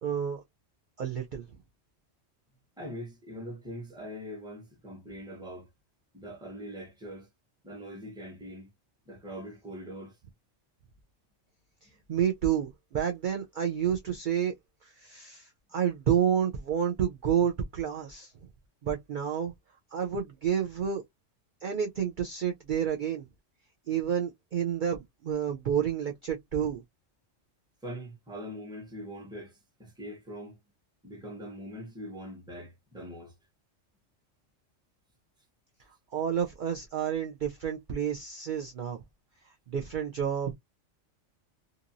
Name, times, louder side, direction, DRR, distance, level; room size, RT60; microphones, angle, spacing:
voice 1, 0.0-0.4 1.0-1.4 11.8-14.5 14.8-18.3 18.8-19.5 19.9-21.0 21.6-23.2 23.9-26.8 36.1-39.0 39.7-40.5, right 8 dB, 60° right, 0.5 m, -30 dB
voice 2, 2.8-5.7 6.1-7.3 7.6-8.7 9.1-10.2 27.8-30.6 31.0-33.3, equal, 5° right, 0.8 m, -42 dB
2.8 x 2.5 x 2.5 m
omnidirectional pair, 1.3 m